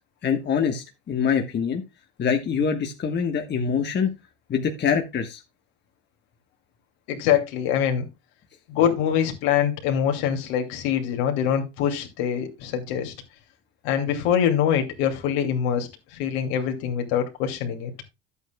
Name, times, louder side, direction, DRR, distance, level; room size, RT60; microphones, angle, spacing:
voice 1, 0.2-1.8 2.2-4.1 4.5-5.4, left 7 dB, 30° left, 1.3 m, -24 dB
voice 2, 7.1-8.0 8.7-13.1 13.8-17.9, left 9 dB, 65° left, 2.5 m, -24 dB
12.0 x 8.3 x 2.3 m
hypercardioid pair, 85°, 34 cm